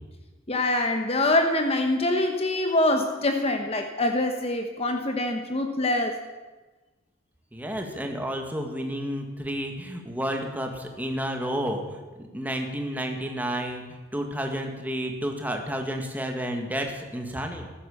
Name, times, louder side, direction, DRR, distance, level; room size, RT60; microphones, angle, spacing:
voice 1, 0.5-6.2, left 1 dB, 30° left, 5 dB, 1.1 m, -24 dB
voice 2, 7.5-17.7, equal, 10° right, 3 dB, 1.8 m, -31 dB
15.0 x 12.5 x 7.2 m, 1.2 s
head